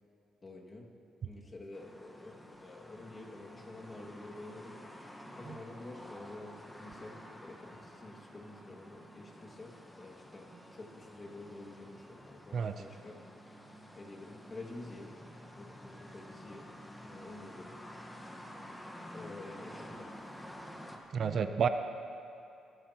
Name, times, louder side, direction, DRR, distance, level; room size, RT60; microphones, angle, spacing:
voice 1, 0.4-0.8 1.2-13.2 13.5-13.6 14.0-15.1 15.6-16.7 17.0-17.7 19.1-20.5, left 2 dB, 30° left, -1 dB, 2.1 m, -49 dB
sound 1, 1.7-21.0, equal, 10° left, 1.3 m, -51 dB
voice 2, 21.1-21.7, right 7 dB, 55° right, 9 dB, 0.6 m, -30 dB
21.0 x 13.0 x 3.0 m, 2.7 s
cardioid pair, 90°, 0 cm